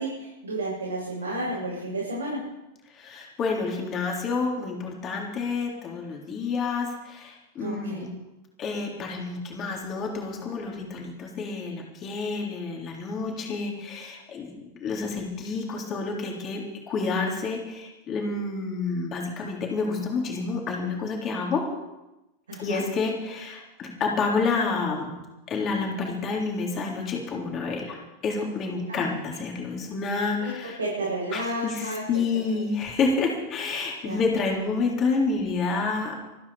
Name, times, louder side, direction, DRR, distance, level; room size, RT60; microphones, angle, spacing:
voice 1, 0.0-2.4 7.6-8.0 22.5-22.8 28.9-29.1 30.4-30.5 30.8-32.0 34.0-34.2, right 1 dB, 75° right, -7 dB, 7.8 m, -31 dB
voice 2, 2.9-8.1 8.6-14.5 14.8-21.6 22.6-25.1 25.5-30.8 31.3-36.2, left 4 dB, 30° left, -1 dB, 3.8 m, -29 dB
26.5 x 9.7 x 5.1 m, 0.99 s
figure-of-eight pair, 90°, 0 cm